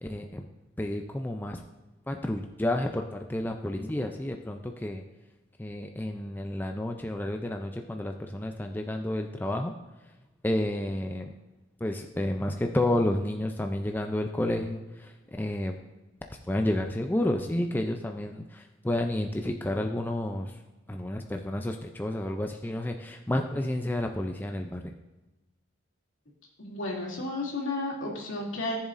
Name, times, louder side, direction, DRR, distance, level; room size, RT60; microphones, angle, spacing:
voice 1, 0.0-0.5 0.8-1.6 2.1-5.0 5.6-9.7 10.4-11.3 11.8-15.8 16.5-20.6 20.9-24.9, left 1 dB, 10° left, 4 dB, 0.4 m, -30 dB
voice 2, 26.6-28.8, left 2 dB, 75° left, -4 dB, 2.6 m, -32 dB
14.0 x 7.1 x 2.6 m, 1.1 s
head